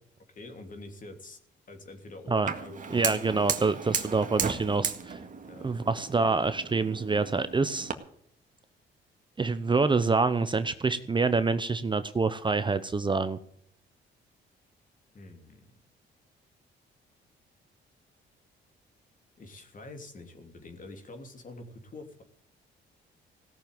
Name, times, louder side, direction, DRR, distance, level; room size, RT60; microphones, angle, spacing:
voice 1, 0.3-1.4 1.7-4.0 5.4-5.7 15.1-15.7 19.4-22.2, left 2 dB, 40° left, 5 dB, 3.1 m, -46 dB
Fire, 2.5-7.9, right 6 dB, 40° right, 1.9 m, -35 dB
voice 2, 2.9-5.2 5.6-7.9 9.4-13.4, right 4 dB, 25° right, 12 dB, 0.8 m, -26 dB
17.0 x 6.9 x 9.3 m, 0.67 s
cardioid pair, 90°, 20 cm